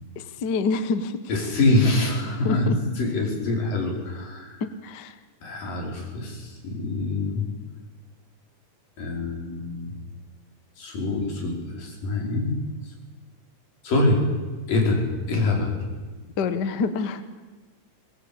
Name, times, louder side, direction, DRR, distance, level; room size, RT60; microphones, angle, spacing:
voice 1, 0.4-1.2 2.4-2.8 4.6-5.1 16.4-17.2, left 4 dB, 55° left, 11 dB, 1.1 m, -26 dB
voice 2, 1.3-4.5 5.4-7.4 9.0-9.9 10.8-12.5 13.8-14.3 14.7-15.8, left 2 dB, 90° left, -1 dB, 6.7 m, -25 dB
23.0 x 19.5 x 8.7 m, 1.3 s
omnidirectional pair, 3.8 m